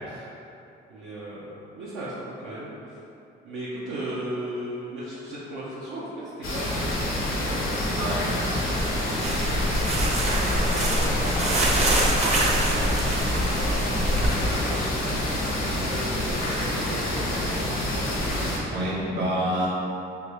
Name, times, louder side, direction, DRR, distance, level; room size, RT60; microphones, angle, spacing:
voice 1, 0.9-1.5 1.8-3.0 3.4-6.9 7.1-8.0 8.7-12.1 12.4-15.4 15.7-17.7, right 1 dB, 85° right, -8 dB, 0.6 m, -37 dB
sound 1, 6.4-18.6, left 1 dB, 90° left, 0.7 m, -27 dB
voice 2, 8.0-8.3 18.7-19.7, right 1 dB, 55° right, -7 dB, 1.2 m, -27 dB
sound 2, 9.2-14.3, right 1 dB, 35° right, 0.6 m, -25 dB
sound 3, 10.6-14.5, left 2 dB, 40° left, 0.4 m, -38 dB
3.2 x 2.6 x 3.1 m, 2.8 s
cardioid pair, 90°, 20 cm